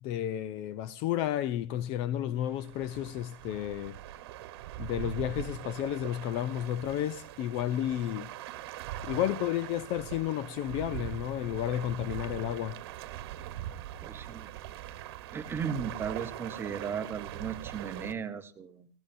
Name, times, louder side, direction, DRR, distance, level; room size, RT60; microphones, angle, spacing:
voice 1, 0.0-4.0 4.8-8.3 9.0-12.8, left 12 dB, 40° left, 0.5 m, -32 dB
sound 1, 2.4-18.1, right 12 dB, 60° right, 1.2 m, -42 dB
voice 2, 14.0-14.5 15.3-18.9, right 7 dB, 15° right, 0.9 m, -36 dB
18.0 x 17.5 x 2.6 m
hypercardioid pair, 135°, 15 cm